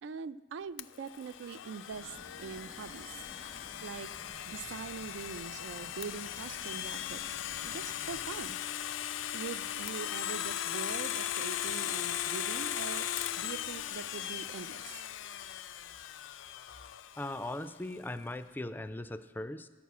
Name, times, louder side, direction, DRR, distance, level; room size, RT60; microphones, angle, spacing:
voice 1, 0.0-3.2 3.8-4.1 4.5-7.4 7.6-8.6 9.3-13.1 13.4-15.0, right 6 dB, 75° right, 15 dB, 0.3 m, -43 dB
Domestic sounds home sounds, 0.8-17.6, left 11 dB, 80° left, 0.4 m, -38 dB
sound 1, 1.9-8.5, equal, 30° right, 0.9 m, -54 dB
voice 2, 17.2-19.7, left 1 dB, 10° left, 12 dB, 0.3 m, -39 dB
12.0 x 6.1 x 8.2 m, 1.3 s
head